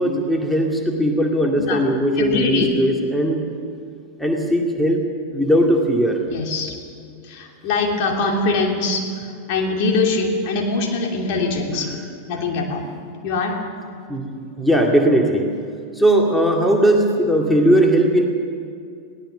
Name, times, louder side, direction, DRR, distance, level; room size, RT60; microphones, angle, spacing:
voice 1, 0.0-3.5 4.2-5.0 5.3-6.2 11.7-11.9 14.1-15.6 15.9-18.2, right 1 dB, ahead, 1 dB, 2.2 m, -18 dB
voice 2, 2.2-2.7 6.3-6.7 7.2-9.0 9.5-12.0 12.3-12.9 13.2-13.6, left 3 dB, 45° left, 1 dB, 3.0 m, -22 dB
22.0 x 17.5 x 7.0 m, 2.4 s
figure-of-eight pair, 90°, 0 cm